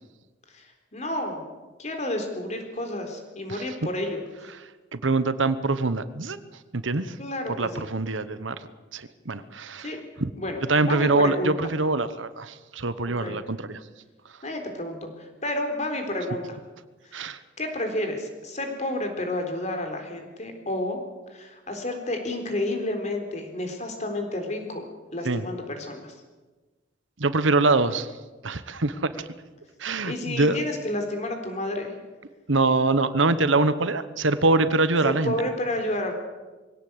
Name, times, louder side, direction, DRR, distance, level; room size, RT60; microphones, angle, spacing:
voice 1, 0.5-1.4 1.8-4.2 7.2-7.8 9.8-10.0 10.4-11.6 13.2-13.4 14.4-16.6 17.0-17.2 17.6-21.0 21.3-26.1 30.1-31.9 35.0-36.1, left 1 dB, 35° left, 5 dB, 3.9 m, -30 dB
voice 2, 4.9-6.4 6.7-7.2 7.6-8.6 8.9-9.9 10.2-10.3 10.7-13.8 17.1-17.4 25.2-25.4 27.2-28.1 28.4-29.2 29.8-30.6 32.5-35.3, right 3 dB, 80° right, 13 dB, 1.1 m, -24 dB
22.5 x 17.0 x 8.1 m, 1.2 s
head